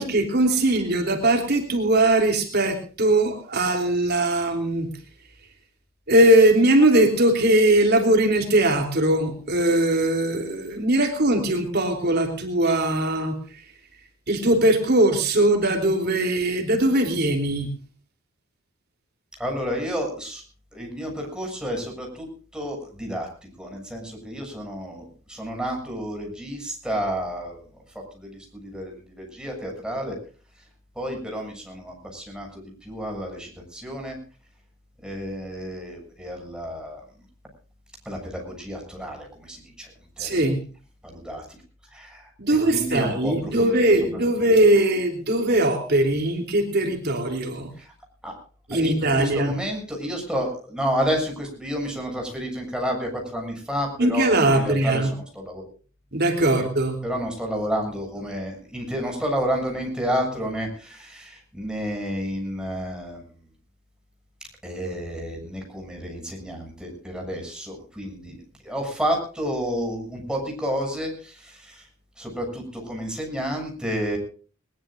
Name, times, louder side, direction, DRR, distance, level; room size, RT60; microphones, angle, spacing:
voice 1, 0.0-4.9 6.1-13.6 14.3-17.7 40.2-40.6 42.4-47.7 48.7-49.5 54.0-55.1 56.1-57.0, right 1 dB, 55° right, 4 dB, 3.3 m, -20 dB
voice 2, 19.4-20.4 20.7-22.3 22.5-23.3 23.6-27.6 28.1-30.2 31.0-34.2 35.0-37.0 38.1-39.9 40.2-40.3 41.0-41.6 41.9-42.3 42.7-43.7 47.8-47.9 48.2-48.3 48.7-55.6 56.5-56.6 57.0-63.2 64.6-68.4 68.6-71.9 72.2-74.2, equal, 5° right, 1 dB, 6.9 m, -30 dB
21.5 x 21.0 x 2.5 m, 0.39 s
head